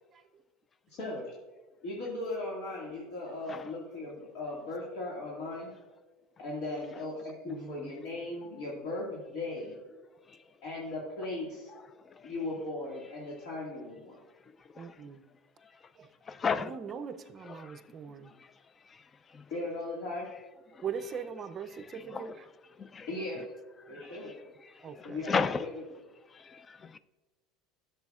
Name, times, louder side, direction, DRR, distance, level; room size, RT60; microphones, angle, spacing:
voice 1, 1.8-5.7 6.4-9.8 10.6-11.7 12.2-14.2 19.5-20.3 23.1-23.4 23.9-24.3 25.0-25.7, left 2 dB, 65° left, 1.9 m, -37 dB
voice 2, 3.2-3.6 7.5-7.9 9.9-10.1 14.8-15.2 16.0-16.1 16.5-18.3 20.8-22.5 24.8-25.3, right 6 dB, 30° right, 0.5 m, -41 dB
voice 3, 16.3-16.7 17.5-17.8 18.9-19.0 19.3-19.4 20.7-20.8 21.9-22.4 22.8-23.1 23.9-24.3 24.8-25.7 26.3-27.0, left 5 dB, 25° left, 0.3 m, -35 dB
11.5 x 6.8 x 2.4 m
supercardioid pair, 140°, 0 cm